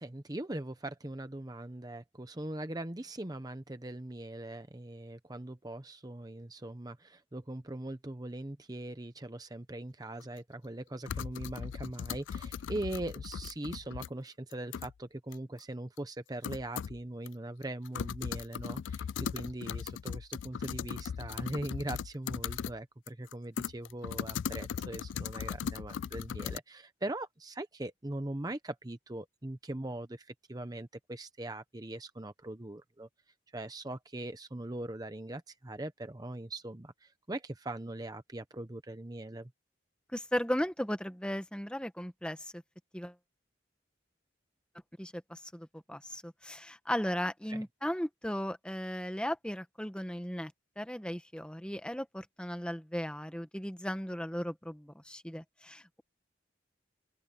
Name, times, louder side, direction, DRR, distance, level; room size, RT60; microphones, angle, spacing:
voice 1, 0.0-33.1 33.5-39.5 47.5-47.6, right 1 dB, 20° right, 0.8 m, -41 dB
sound 1, 10.2-10.3 11.1-14.1 14.5-14.9 15.3-15.4 16.0-16.1 16.4-17.0 17.3-17.4 17.6-22.8 23.1-26.6, left 7 dB, 85° left, 0.4 m, -38 dB
voice 2, 40.1-42.6 42.9-43.1 45.0-50.5 50.8-56.0, equal, 5° left, 1.2 m, -36 dB
open air
head